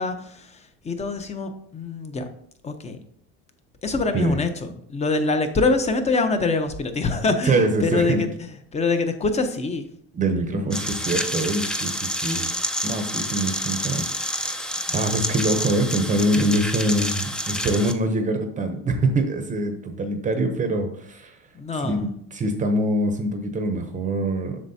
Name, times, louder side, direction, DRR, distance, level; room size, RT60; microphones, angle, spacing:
voice 1, 0.0-2.3 2.6-3.0 3.8-9.9 21.5-22.1, left 3 dB, 20° left, 8 dB, 0.8 m, -25 dB
voice 2, 7.4-8.3 10.1-12.5 12.8-21.4 21.7-24.6, right 1 dB, 25° right, 6 dB, 0.7 m, -24 dB
sound 1, 10.7-17.9, left 1 dB, 5° left, 0.4 m, -28 dB
7.5 x 6.3 x 2.8 m, 0.66 s
cardioid pair, 130°, 29 cm